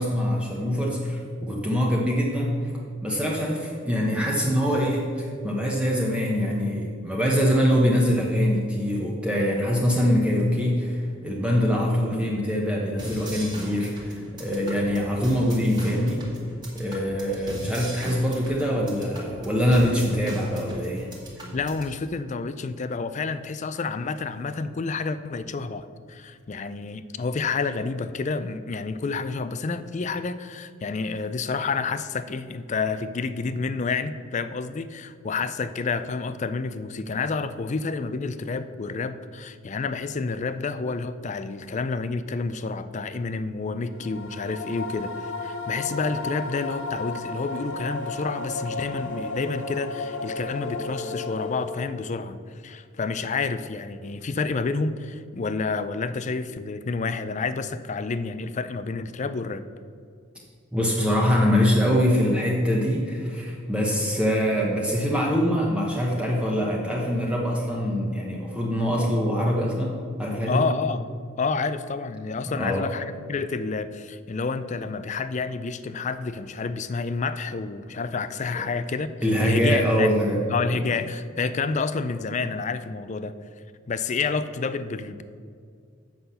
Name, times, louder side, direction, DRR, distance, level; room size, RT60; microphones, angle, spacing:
voice 1, 0.0-2.7 3.0-16.3 16.7-21.1 60.7-70.7 72.5-72.8 78.5-78.6 79.2-80.4 80.7-80.8, equal, 5° right, -3 dB, 0.9 m, -24 dB
sound 1, 13.0-21.9, equal, 20° right, 1.8 m, -38 dB
voice 2, 21.5-59.6 70.5-71.0 71.4-79.1 79.4-80.1 80.5-83.3 83.9-85.2, left 4 dB, 35° left, 12 dB, 0.4 m, -29 dB
sound 2, 43.9-52.1, left 3 dB, 65° left, 0.9 m, -33 dB
7.8 x 5.9 x 6.8 m, 2.2 s
head